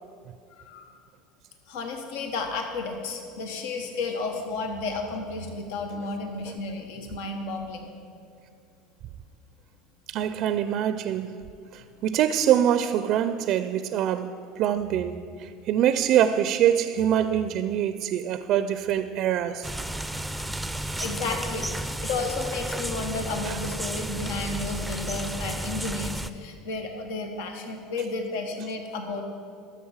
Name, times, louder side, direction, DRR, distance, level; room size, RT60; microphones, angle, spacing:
voice 1, 0.5-0.8 1.7-7.9 21.0-29.2, left 3 dB, 80° left, 1.2 m, -32 dB
voice 2, 10.1-11.4 11.7-19.7 23.4-23.6, right 10 dB, 55° right, 0.4 m, -24 dB
sound 1, 19.6-26.3, right 1 dB, ahead, 0.5 m, -32 dB
12.5 x 6.8 x 7.3 m
supercardioid pair, 105°, 0 cm